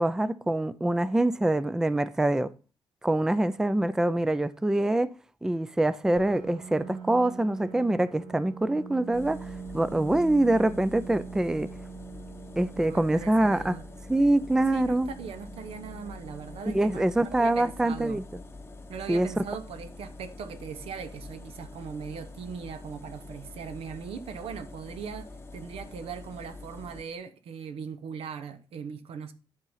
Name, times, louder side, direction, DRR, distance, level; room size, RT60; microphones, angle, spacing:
voice 1, 0.0-2.5 3.0-5.1 5.4-9.5 9.7-11.7 12.6-13.8 14.1-15.1 16.7-18.2 19.1-19.3, right 1 dB, 5° right, 0.4 m, -25 dB
Piano, 6.1-21.6, right 6 dB, 55° right, 5.5 m, -45 dB
sound 1, 9.1-27.0, left 2 dB, 25° left, 0.8 m, -45 dB
voice 2, 12.7-13.9 14.7-18.2 18.9-29.3, right 6 dB, 90° right, 1.0 m, -40 dB
11.0 x 3.8 x 5.6 m
wide cardioid pair, 150°, 10 cm